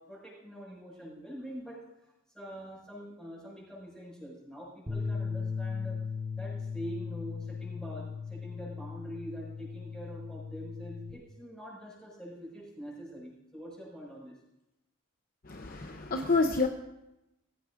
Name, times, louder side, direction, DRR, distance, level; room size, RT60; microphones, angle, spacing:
voice 1, 0.0-1.9 2.3-6.1 6.4-14.4, equal, 5° left, -5 dB, 6.0 m, -44 dB
sound 1, 4.9-11.1, left 5 dB, 15° right, 1.3 m, -37 dB
voice 2, 15.5-16.7, left 3 dB, 40° left, 4 dB, 0.8 m, -28 dB
20.5 x 15.5 x 2.6 m, 0.90 s
head